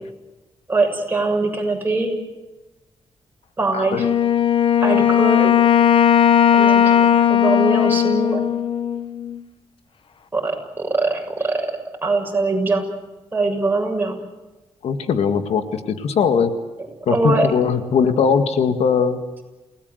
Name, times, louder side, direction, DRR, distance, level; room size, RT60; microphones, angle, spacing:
voice 1, 0.7-2.1 3.6-4.1 4.8-5.5 6.5-8.5 10.3-11.6 12.0-12.8 13.3-14.2 17.1-17.5, right 3 dB, 20° right, 2 dB, 7.1 m, -22 dB
voice 2, 3.7-4.0 14.8-16.5 17.1-19.2, left 6 dB, 80° left, 8 dB, 2.1 m, -20 dB
Wind instrument woodwind instrument, 4.0-9.4, left 9 dB, 55° left, 1.4 m, -16 dB
29.0 x 19.0 x 8.2 m, 1.1 s
cardioid pair, 115°, 11 cm